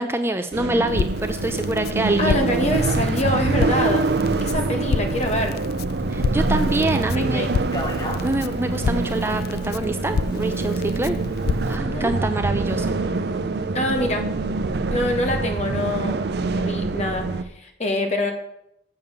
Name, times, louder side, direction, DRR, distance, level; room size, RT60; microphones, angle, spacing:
voice 1, 0.0-2.5 6.1-7.5 8.2-11.2 11.7-13.0, right 2 dB, 15° right, 7 dB, 0.5 m, -25 dB
sound 1, 0.5-17.4, right 3 dB, 60° right, 0.5 m, -25 dB
Crackle, 0.9-11.8, left 5 dB, 55° left, 0.3 m, -30 dB
voice 2, 2.2-4.1 4.4-5.6 7.0-7.5 11.7-12.1 13.7-14.3 14.9-16.1 16.4-18.3, left 1 dB, 40° left, 3 dB, 1.7 m, -25 dB
sound 2, 7.6-15.8, left 1 dB, 25° left, 1.1 m, -40 dB
8.0 x 7.0 x 6.8 m, 0.79 s
head